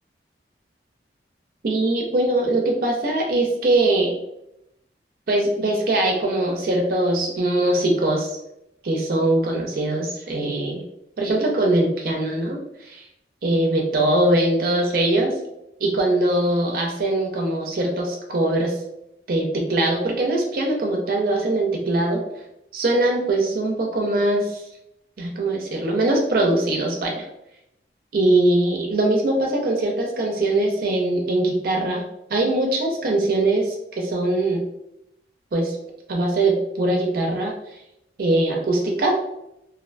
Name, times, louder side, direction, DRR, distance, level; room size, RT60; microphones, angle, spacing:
voice 1, 1.6-4.2 5.3-8.3 8.8-10.8 11.2-13.0 13.4-15.3 15.8-18.8 19.3-22.2 22.7-24.6 25.2-27.2 28.1-32.0 32.3-34.6 35.5-35.8 36.1-37.5 38.2-39.2, right 2 dB, 55° right, 0 dB, 0.4 m, -21 dB
2.5 x 2.1 x 2.4 m, 0.83 s
head